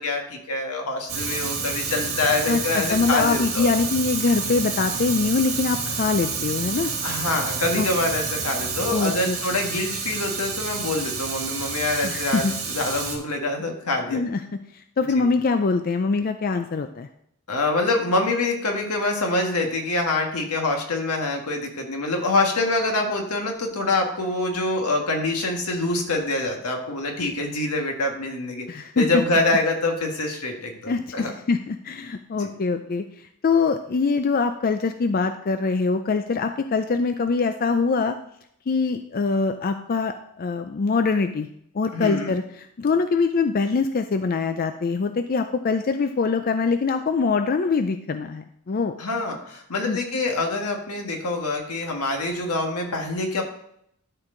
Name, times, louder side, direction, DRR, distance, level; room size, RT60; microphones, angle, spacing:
voice 1, 0.0-3.7 7.0-14.2 15.0-15.2 17.5-28.7 28.9-31.3 32.4-32.5 41.9-42.3 49.0-53.4, left 2 dB, 85° left, 2 dB, 1.6 m, -25 dB
Fire, 1.1-13.2, right 5 dB, 65° right, 2.1 m, -29 dB
voice 2, 2.5-6.9 7.8-7.9 8.9-9.4 12.0-12.5 14.1-14.4 15.0-17.1 28.7-29.1 30.9-33.0 33.4-38.1 38.7-41.5 41.7-48.9 49.9-50.0, left 4 dB, 40° left, 8 dB, 0.4 m, -23 dB
12.5 x 4.6 x 3.8 m, 0.72 s
head